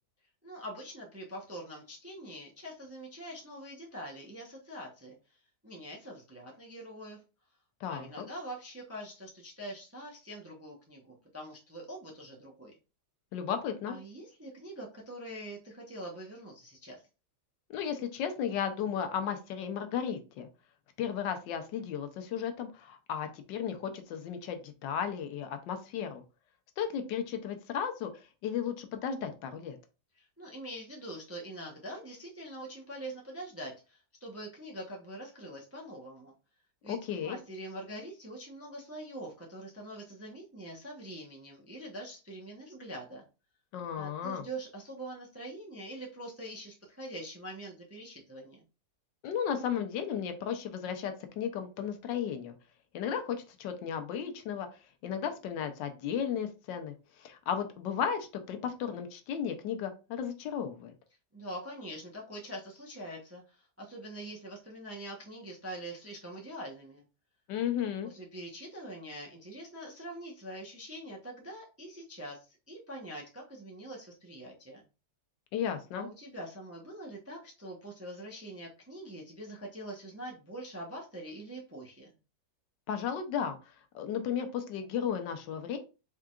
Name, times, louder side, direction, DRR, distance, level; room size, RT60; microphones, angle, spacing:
voice 1, 0.4-5.4 5.6-7.2 7.9-12.7 13.9-17.0 30.2-36.3 36.8-43.2 43.9-48.6 61.3-67.0 68.0-74.8 75.9-82.1, right 1 dB, 15° right, -1 dB, 0.5 m, -44 dB
voice 2, 7.8-8.2 13.3-14.0 17.7-20.5 21.0-26.2 26.8-29.8 36.9-37.4 43.7-44.4 49.2-52.5 52.9-54.7 55.0-60.9 67.5-68.1 75.5-76.1 82.9-83.6 83.9-85.8, left 8 dB, 90° left, 7 dB, 1.4 m, -34 dB
4.7 x 3.7 x 2.4 m, 0.32 s
omnidirectional pair, 1.9 m